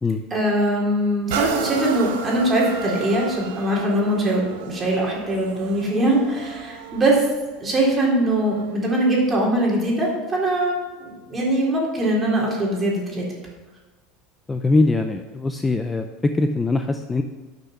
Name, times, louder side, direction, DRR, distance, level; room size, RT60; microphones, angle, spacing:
voice 1, 0.3-7.2 7.6-13.2, right 1 dB, 20° right, -3 dB, 3.7 m, -22 dB
sound 1, 1.3-8.9 9.5-9.6, right 6 dB, 80° right, 1.2 m, -33 dB
voice 2, 14.5-17.2, left 2 dB, 15° left, 6 dB, 0.6 m, -22 dB
12.0 x 6.8 x 5.9 m, 1.2 s
supercardioid pair, 135°, 0 cm